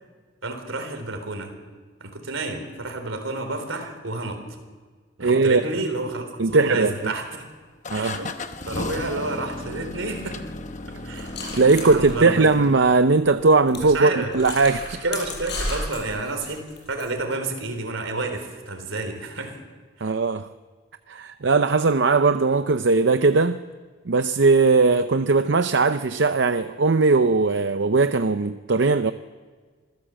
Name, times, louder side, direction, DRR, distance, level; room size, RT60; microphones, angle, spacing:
voice 1, 0.4-1.5 2.0-4.4 5.2-6.3 6.5-7.5 7.9-8.3 8.7-10.4 11.0-11.3 11.8-12.4 13.9-14.3 15.0-19.6 20.0-20.1, right 2 dB, 80° right, 3.8 m, -30 dB
voice 2, 5.2-5.8 6.4-7.1 7.9-8.2 11.5-15.0 20.0-20.5 21.1-23.6 24.1-29.1, right 3 dB, 60° right, 0.6 m, -19 dB
sound 1, 6.5-7.2 7.8-12.8, left 2 dB, 35° left, 1.0 m, -35 dB
sound 2, 11.2-13.0 13.3-13.4 13.7-13.9 14.3-17.1, left 2 dB, 55° left, 6.4 m, -33 dB
26.0 x 15.0 x 7.6 m
head